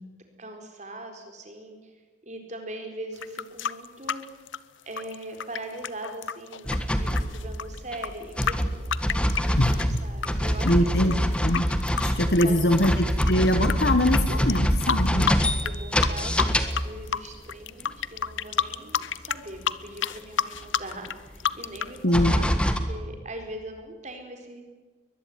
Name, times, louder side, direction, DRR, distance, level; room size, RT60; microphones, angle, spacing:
voice 1, 0.4-4.4 4.8-6.7 7.0-11.3 12.2-12.7 15.1-22.5 22.8-24.6, right 1 dB, 40° right, 4 dB, 4.1 m, -41 dB
sound 1, 3.2-10.3 10.6-13.7 14.1-14.2 14.5-15.8 16.0-16.8 17.1-22.0, left 7 dB, 80° left, 0.8 m, -29 dB
sound 2, 6.7-8.1 8.4-17.2 18.3-18.4 18.9-19.0 20.5-20.6 21.7-21.8 22.1-22.8, equal, 5° left, 1.5 m, -25 dB
voice 2, 10.6-11.1 11.4-11.7 12.0-15.3 22.0-22.3, left 1 dB, 55° left, 8 dB, 1.4 m, -23 dB
22.5 x 21.0 x 9.3 m, 1.3 s
head